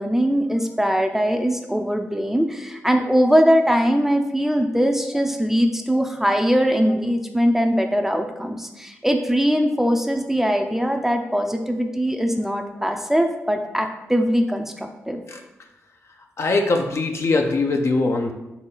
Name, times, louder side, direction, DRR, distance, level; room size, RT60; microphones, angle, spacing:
voice 1, 0.0-14.7 15.1-15.2, equal, 5° right, 5 dB, 0.5 m, -21 dB
voice 2, 16.4-18.3, left 3 dB, 55° left, 3 dB, 0.6 m, -21 dB
3.9 x 2.7 x 3.9 m, 0.99 s
cardioid pair, 55°, 5 cm